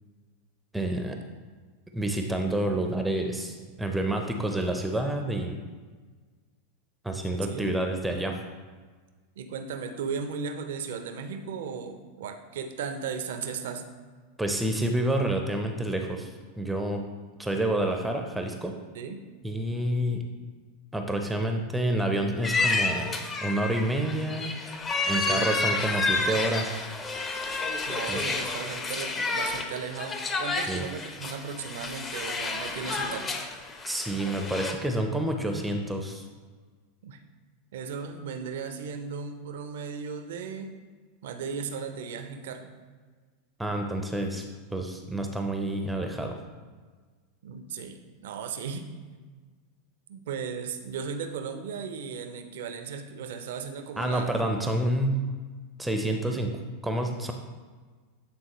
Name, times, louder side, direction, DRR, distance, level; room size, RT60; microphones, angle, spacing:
voice 1, 0.7-1.2 1.9-5.6 7.0-8.4 14.4-17.1 17.4-18.8 19.4-20.2 20.9-24.5 25.1-26.7 28.1-28.2 30.7-30.9 33.8-36.3 43.6-44.4 44.7-46.4 54.0-55.2 55.8-56.5 56.8-57.3, right 1 dB, 5° right, 4 dB, 0.5 m, -28 dB
voice 2, 9.4-13.8 18.9-19.2 25.2-25.5 27.9-33.4 37.0-37.2 37.7-40.7 41.2-42.7 47.4-48.9 50.1-54.4 56.2-56.4, right 6 dB, 70° right, 6 dB, 0.6 m, -36 dB
sound 1, 22.4-34.7, left 3 dB, 25° left, 0.7 m, -30 dB
8.5 x 3.7 x 3.0 m, 1.5 s
hypercardioid pair, 95°, 0 cm